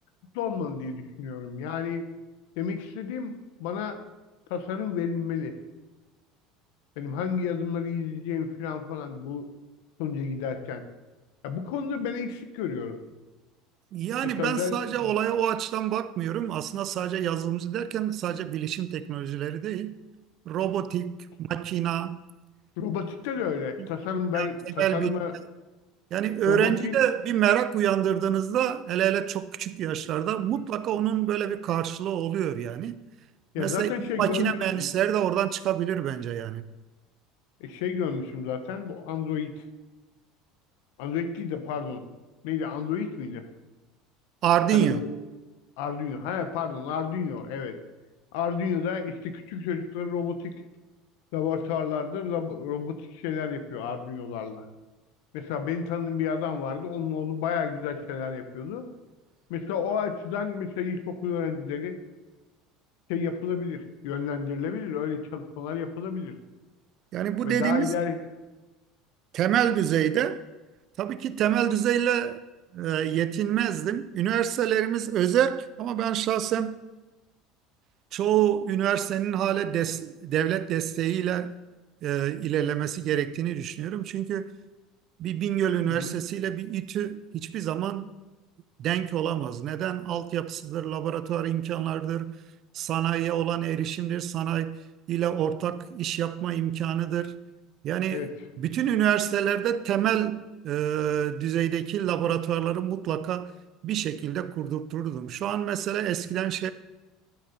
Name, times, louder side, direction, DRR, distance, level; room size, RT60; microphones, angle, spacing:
voice 1, 0.3-2.1 2.6-4.0 4.5-5.6 7.0-9.5 10.0-10.8 11.4-13.0 14.2-15.1 22.8-25.3 26.5-26.9 33.5-34.9 37.6-39.5 41.0-42.0 42.4-43.4 44.7-45.1 45.8-47.8 48.3-50.6 51.3-54.6 55.3-58.9 59.5-62.0 63.1-66.3 67.4-68.2 70.0-70.1 85.9-86.2 98.1-98.3, left 6 dB, 80° left, 1.0 m, -31 dB
voice 2, 13.9-20.0 20.5-22.2 23.8-23.9 24.3-25.1 26.1-33.0 33.6-33.9 34.2-36.6 44.4-45.0 67.1-68.0 69.3-70.4 71.0-72.4 72.7-76.8 78.1-81.5 82.0-84.5 85.2-88.1 88.8-92.4 92.7-94.8 95.1-97.4 97.8-103.5 103.8-106.7, right 10 dB, 50° right, 0.5 m, -27 dB
12.0 x 4.2 x 5.2 m
supercardioid pair, 115°, 0 cm